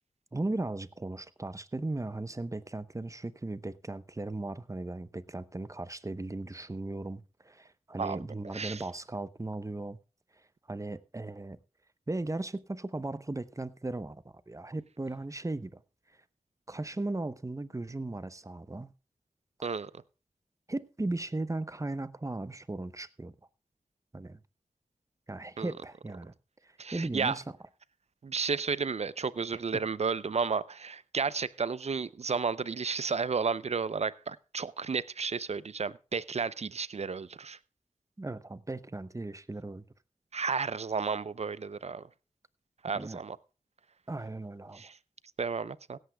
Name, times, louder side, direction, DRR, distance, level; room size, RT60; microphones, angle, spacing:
voice 1, 0.3-10.0 10.7-11.6 12.1-15.8 16.7-18.9 20.7-23.3 24.1-24.4 25.3-26.3 26.6-27.4 29.7-29.8 38.2-39.8 42.9-43.2 44.1-44.9, right 2 dB, 25° right, 0.8 m, -37 dB
voice 2, 26.8-27.4 28.2-37.6 40.3-42.1 42.8-43.4 44.7-45.0 45.4-46.0, right 5 dB, 55° right, 0.6 m, -32 dB
16.5 x 14.5 x 2.3 m
cardioid pair, 50°, 13 cm